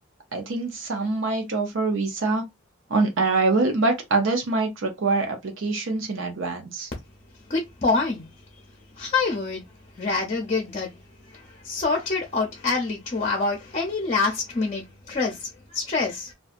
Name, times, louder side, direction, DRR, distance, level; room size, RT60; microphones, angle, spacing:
voice 1, 0.3-2.4 2.9-6.9, right 3 dB, 70° right, 0.6 m, -24 dB
voice 2, 7.5-8.3 8.9-9.6 10.0-11.0 11.2-16.3, left 4 dB, 35° left, 0.6 m, -26 dB
2.6 x 2.2 x 2.4 m
head